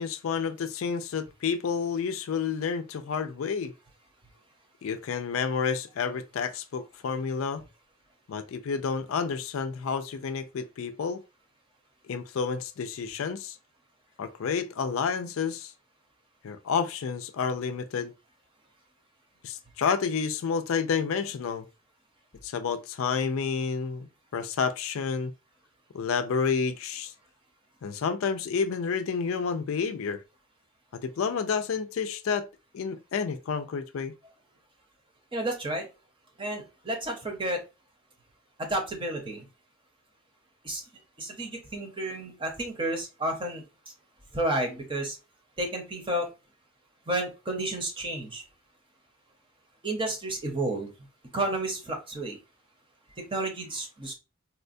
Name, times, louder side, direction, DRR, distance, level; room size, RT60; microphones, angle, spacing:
voice 1, 0.0-3.7 4.8-7.6 8.3-11.2 12.1-13.6 14.2-15.7 16.4-18.1 19.4-21.6 22.4-24.1 24.3-25.3 25.9-27.1 27.8-30.2 30.9-32.5 32.7-34.1, left 6 dB, 70° left, 0.4 m, -30 dB
voice 2, 35.3-35.9 36.4-37.6 38.6-39.5 40.6-40.8 41.2-43.6 44.3-45.2 45.6-46.3 47.1-48.4 49.8-50.9 51.3-52.4 53.2-54.1, right 1 dB, 25° right, 0.7 m, -31 dB
4.2 x 2.2 x 2.5 m
head